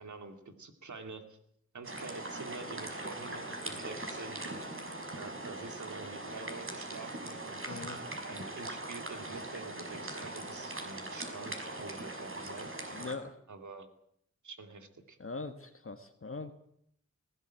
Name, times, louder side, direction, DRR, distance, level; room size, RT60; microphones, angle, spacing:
voice 1, 0.0-1.4 1.7-4.6 5.2-7.8 8.3-12.7 13.5-13.9 14.4-15.2, right 3 dB, 80° right, 7 dB, 2.7 m, -47 dB
sound 1, 1.8-13.1, right 2 dB, 45° right, 5.7 m, -41 dB
voice 2, 7.7-8.0 12.9-13.4 15.2-16.5, left 3 dB, 45° left, 6 dB, 1.6 m, -41 dB
19.5 x 17.5 x 9.0 m, 0.70 s
cardioid pair, 55°, 29 cm